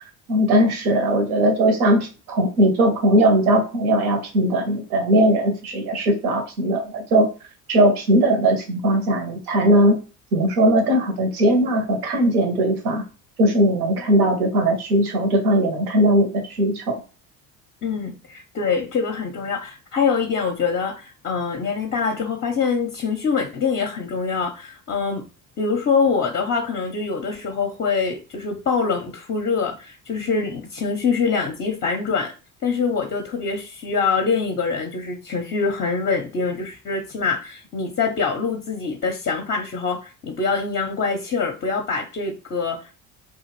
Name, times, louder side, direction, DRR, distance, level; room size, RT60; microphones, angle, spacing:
voice 1, 0.3-7.3 7.7-10.0 10.3-13.0 13.4-17.0, right 1 dB, 80° right, 3 dB, 0.8 m, -19 dB
voice 2, 17.8-25.2 25.6-32.3 32.6-43.0, left 5 dB, 25° left, 4 dB, 0.5 m, -24 dB
2.5 x 2.3 x 3.0 m, 0.34 s
hypercardioid pair, 60°, 44 cm